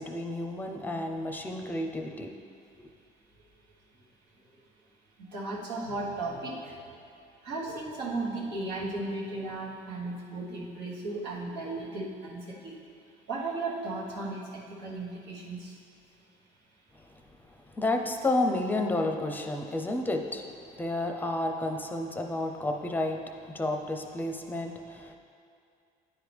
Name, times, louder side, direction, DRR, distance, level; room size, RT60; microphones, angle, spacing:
voice 1, 0.0-2.4 2.8-2.9 17.7-20.5 20.8-25.1, left 2 dB, 10° left, 4 dB, 0.6 m, -31 dB
voice 2, 5.3-7.0 7.4-12.7 13.3-15.8, right 2 dB, 90° right, -5 dB, 1.5 m, -35 dB
10.0 x 4.7 x 3.4 m, 2.5 s
cardioid pair, 110°, 17 cm